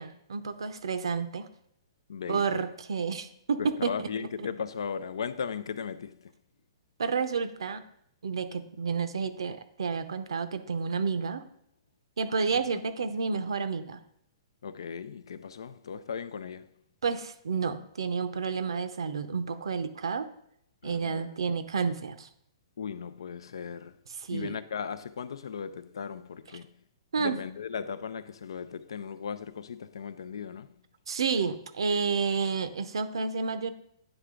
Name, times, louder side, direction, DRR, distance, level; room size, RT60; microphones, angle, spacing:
voice 1, 0.0-1.5 2.3-4.1 4.4-4.5 7.0-7.8 8.2-11.4 12.2-14.0 17.0-20.3 20.8-22.3 24.3-24.6 27.1-27.4 31.1-33.7, right 5 dB, 85° right, 0.7 m, -30 dB
voice 2, 2.1-2.7 3.6-6.3 12.7-12.8 14.6-16.7 20.8-21.4 22.8-24.0 24.3-26.7 27.2-30.7, left 6 dB, 80° left, 0.4 m, -37 dB
9.8 x 3.4 x 3.7 m
hypercardioid pair, 145°, 3 cm